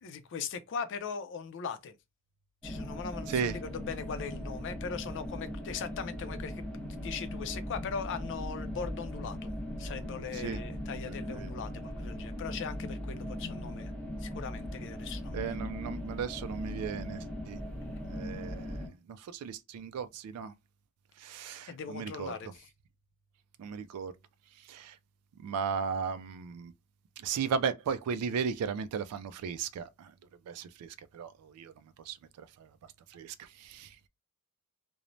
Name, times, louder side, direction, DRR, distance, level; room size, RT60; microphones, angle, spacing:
voice 1, 0.0-2.0 2.6-9.5 9.8-13.9 14.2-15.6 21.7-22.6, left 6 dB, 55° left, 0.4 m, -40 dB
sound 1, 2.6-18.9, left 1 dB, 5° left, 1.2 m, -39 dB
voice 2, 11.1-11.5 15.3-17.6 18.1-20.5 21.2-22.3 23.6-24.1 24.7-25.0 25.4-26.7 27.2-30.1 30.5-31.7 32.1-32.7 33.1-34.0, right 6 dB, 85° right, 0.3 m, -36 dB
3.0 x 2.0 x 2.5 m
head